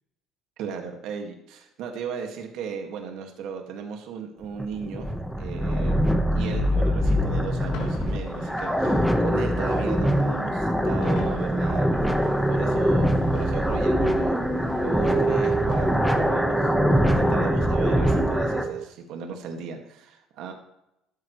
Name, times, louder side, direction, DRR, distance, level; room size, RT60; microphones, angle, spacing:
voice 1, 0.6-5.1 5.4-6.1 6.4-11.9 12.5-14.4 14.7-20.5, right 6 dB, 70° right, 4 dB, 2.0 m, -36 dB
sound 1, 4.4-18.6, equal, ahead, 1.3 m, -23 dB
sound 2, 7.7-16.7, left 5 dB, 75° left, 3.7 m, -45 dB
sound 3, 13.3-18.9, right 7 dB, 40° right, 0.3 m, -31 dB
13.0 x 12.5 x 3.2 m, 0.84 s
cardioid pair, 150°, 0 cm